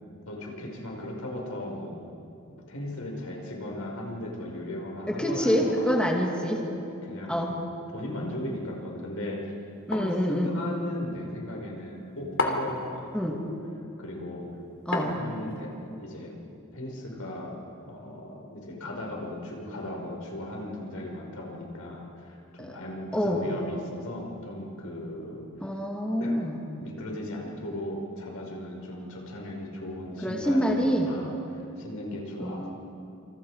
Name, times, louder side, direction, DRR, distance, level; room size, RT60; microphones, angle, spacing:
voice 1, 0.3-2.0 2.4-6.1 7.0-7.6 7.9-9.5 9.9-13.1 13.3-13.5 14.0-14.5 15.1-16.4 16.7-25.8 26.2-26.4 26.8-32.7, left 1 dB, 80° left, 0 dB, 5.3 m, -37 dB
voice 2, 5.1-6.6 7.3-7.6 9.9-10.5 13.1-13.3 14.9-15.2 22.6-22.8 23.1-23.5 25.6-26.6 30.2-31.1 32.4-32.7, equal, 5° left, -1 dB, 2.5 m, -26 dB
sound 1, 9.9-10.2 12.4-12.8 14.9-15.5, left 2 dB, 60° left, 3.0 m, -29 dB
28.0 x 27.5 x 5.0 m, 2.7 s
head